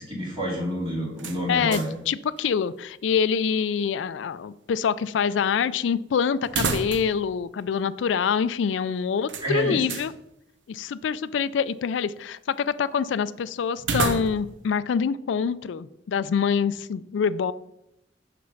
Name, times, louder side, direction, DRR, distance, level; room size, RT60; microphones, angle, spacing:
voice 1, 0.0-1.9 9.4-9.8, equal, 30° right, -4 dB, 2.8 m, -28 dB
sound 1, 1.2-2.1 2.4-2.5 6.4-7.3 7.6-7.7 9.3-10.1 13.8-14.6, right 4 dB, 80° right, 0.8 m, -30 dB
voice 2, 1.5-1.8 2.1-10.1 10.7-17.5, left 6 dB, 90° left, 16 dB, 0.3 m, -25 dB
6.4 x 5.9 x 5.3 m, 0.83 s
head